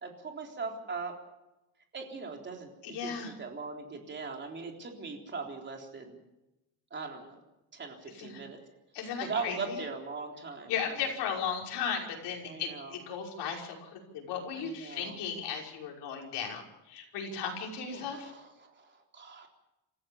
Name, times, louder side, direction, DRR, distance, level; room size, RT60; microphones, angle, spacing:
voice 1, 0.0-1.2 1.9-6.2 6.9-7.4 7.7-8.6 9.2-10.9 12.4-12.9 14.5-15.1 17.8-19.5, right 4 dB, 25° right, 2 dB, 3.7 m, -40 dB
voice 2, 2.8-3.3 8.1-8.4 8.9-9.8 10.7-18.3, left 7 dB, 65° left, 0 dB, 5.7 m, -36 dB
28.0 x 15.5 x 7.2 m, 0.94 s
cardioid pair, 170°, 43 cm